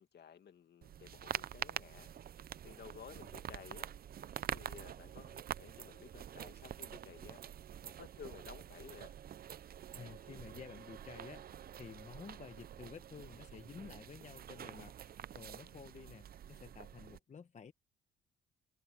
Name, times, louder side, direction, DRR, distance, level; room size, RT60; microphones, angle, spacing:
voice 1, 0.0-2.1 2.6-3.9 4.5-7.5 7.8-9.2, left 8 dB, 55° left, 2.1 m, -55 dB
sound 1, 0.8-17.2, right 10 dB, 50° right, 0.6 m, -47 dB
voice 2, 9.9-14.9 15.3-17.7, left 6 dB, 35° left, 1.1 m, -52 dB
cardioid pair, 90°, 20 cm